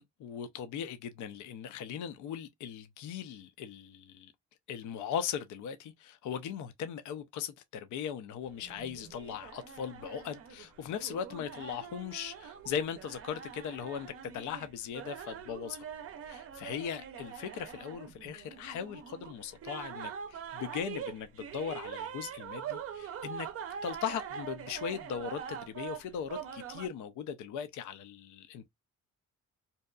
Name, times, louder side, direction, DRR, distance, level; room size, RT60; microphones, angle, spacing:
voice 1, 0.0-4.3 4.7-15.9 16.2-23.5 23.8-28.7, left 8 dB, 75° left, 0.5 m, -39 dB
sound 1, 8.4-26.9, right 8 dB, 50° right, 0.5 m, -44 dB
2.7 x 2.2 x 2.3 m
cardioid pair, 90°, 30 cm